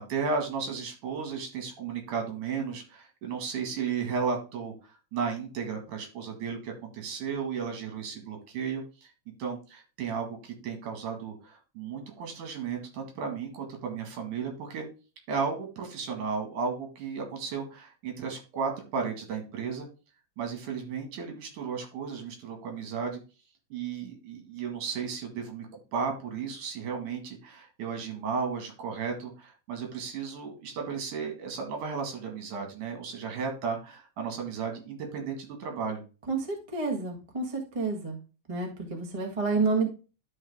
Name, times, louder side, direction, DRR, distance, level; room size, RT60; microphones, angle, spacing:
voice 1, 0.1-4.7 5.1-9.1 9.4-14.9 15.3-19.9 20.4-23.2 23.7-25.7 25.9-36.0, right 5 dB, 75° right, 3 dB, 3.5 m, -34 dB
voice 2, 36.3-38.2 38.5-39.9, right 4 dB, 20° right, 1 dB, 0.8 m, -29 dB
11.5 x 4.7 x 3.6 m, 0.33 s
omnidirectional pair, 3.6 m